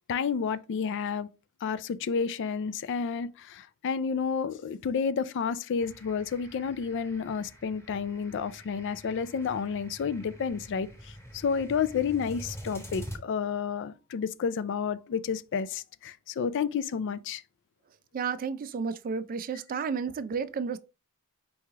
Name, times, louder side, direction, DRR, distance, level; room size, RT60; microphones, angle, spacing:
voice 1, 0.1-1.3 1.6-17.4, left 6 dB, 55° left, 0.3 m, -30 dB
sound 1, 5.8-13.2, equal, 10° left, 1.2 m, -46 dB
voice 2, 18.1-20.8, right 5 dB, 40° right, 0.3 m, -32 dB
4.6 x 3.1 x 3.6 m
head